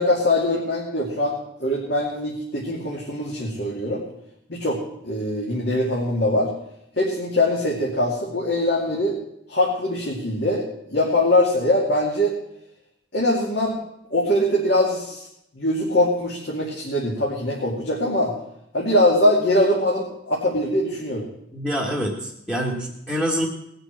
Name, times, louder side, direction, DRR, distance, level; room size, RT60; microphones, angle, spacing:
voice 1, 0.0-4.0 4.5-6.5 7.0-9.2 9.5-12.4 13.1-13.8 14.1-15.3 15.6-18.3 18.7-21.3, left 1 dB, 60° left, -4 dB, 2.6 m, -22 dB
voice 2, 21.5-23.5, equal, 10° left, -4 dB, 1.7 m, -26 dB
19.0 x 6.6 x 7.6 m, 0.79 s
head